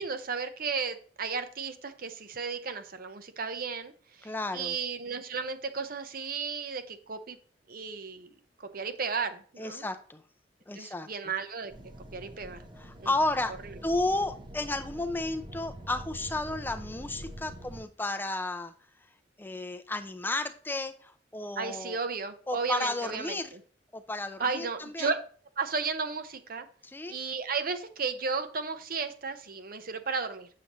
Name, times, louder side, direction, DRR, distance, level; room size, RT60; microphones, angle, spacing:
voice 1, 0.0-7.4 7.7-8.3 8.6-9.8 10.7-11.7 12.1-12.6 13.0-13.1 21.6-23.6 24.4-25.2 25.6-26.7 27.1-30.5, right 5 dB, 55° right, 8 dB, 0.9 m, -34 dB
voice 2, 4.2-4.7 9.6-10.2 10.7-11.1 12.8-13.5 13.8-18.7 19.4-22.0 22.5-23.5 23.9-25.1 26.8-27.2, left 2 dB, 10° left, 8 dB, 0.4 m, -32 dB
sound 1, 11.7-17.8, right 1 dB, 30° right, 0.8 m, -45 dB
7.6 x 6.8 x 3.0 m, 0.43 s
head